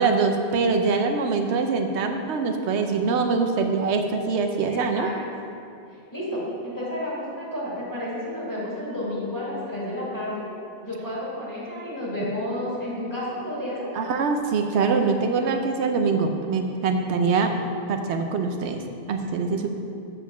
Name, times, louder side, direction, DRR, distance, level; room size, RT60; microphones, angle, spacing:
voice 1, 0.0-5.1 13.9-17.5 17.9-18.8 19.1-19.7, right 4 dB, 85° right, 5 dB, 0.9 m, -23 dB
voice 2, 4.7-5.1 6.1-10.4 10.8-13.9, left 1 dB, 15° left, -8 dB, 2.3 m, -31 dB
7.1 x 5.1 x 6.7 m, 2.5 s
omnidirectional pair, 1.1 m